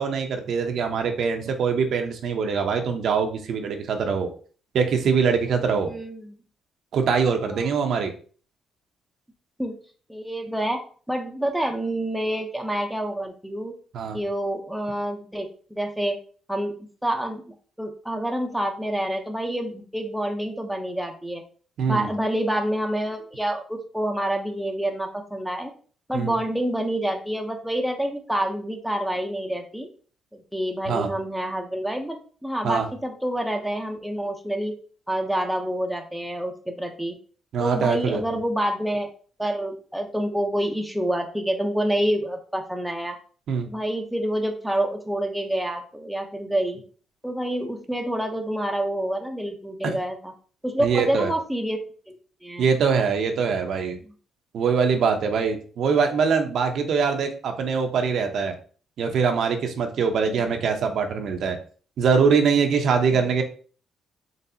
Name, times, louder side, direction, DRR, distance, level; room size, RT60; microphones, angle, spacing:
voice 1, 0.0-4.3 4.7-5.9 6.9-8.1 13.9-14.2 21.8-22.1 26.1-26.4 30.9-31.1 32.6-32.9 37.5-38.2 43.5-43.7 49.8-50.0 50.8-51.3 52.6-54.0 54.5-58.5 59.0-61.6 62.0-63.4, right 5 dB, 65° right, 5 dB, 0.6 m, -23 dB
voice 2, 5.9-6.4 7.5-7.7 9.6-9.8 10.1-10.8 11.1-13.8 14.1-16.2 16.5-16.8 17.0-21.4 21.8-25.7 26.1-29.9 30.3-34.8 35.1-37.1 37.6-39.1 39.4-43.2 43.7-46.8 47.2-50.3 50.6-51.8 52.1-52.7 60.3-60.4 63.1-63.3, right 1 dB, 5° right, 3 dB, 0.6 m, -27 dB
4.0 x 3.2 x 2.7 m, 0.42 s
cardioid pair, 90°, 0 cm